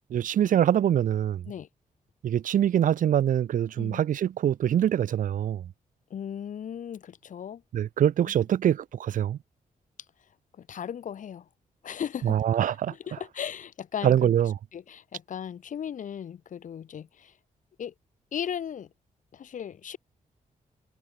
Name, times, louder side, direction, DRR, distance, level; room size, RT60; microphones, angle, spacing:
voice 1, 0.1-1.5 2.2-5.7 7.7-9.4 12.2-12.9 14.0-14.5, right 10 dB, 70° right, 0.9 m, -24 dB
voice 2, 6.1-7.6 8.2-8.3 10.6-11.5 11.8-12.4 12.9-14.3 14.7-17.3 17.8-17.9 18.3-18.9 19.3-20.0, left 8 dB, 65° left, 3.8 m, -36 dB
wide cardioid pair, 145°, 14 cm